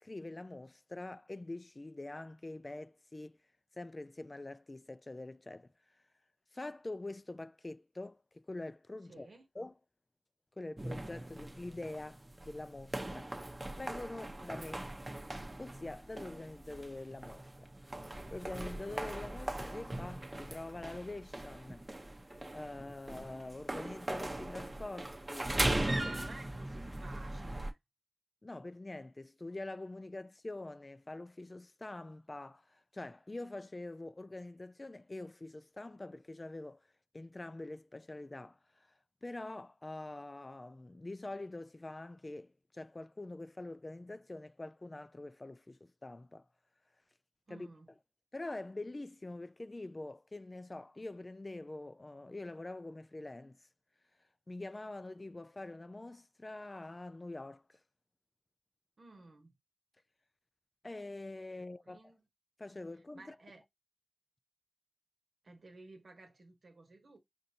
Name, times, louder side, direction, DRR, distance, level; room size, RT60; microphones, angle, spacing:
voice 1, 0.0-3.4 3.8-6.0 6.5-9.3 9.6-9.7 10.6-13.3 13.8-14.9 15.6-17.7 18.3-21.9 22.5-25.5 28.4-36.8 37.1-38.9 39.2-46.5 47.5-47.7 48.3-53.6 54.5-57.8 60.8-62.0 62.6-63.4, left 2 dB, 35° left, 0.3 m, -45 dB
voice 2, 9.1-9.5 25.6-27.8 47.5-47.9 59.0-59.6 61.6-62.3 63.1-63.6 65.4-67.2, right 2 dB, 80° right, 1.1 m, -55 dB
sound 1, 10.8-27.7, right 1 dB, 30° right, 0.7 m, -40 dB
5.1 x 2.7 x 2.7 m
wide cardioid pair, 65°, 0 cm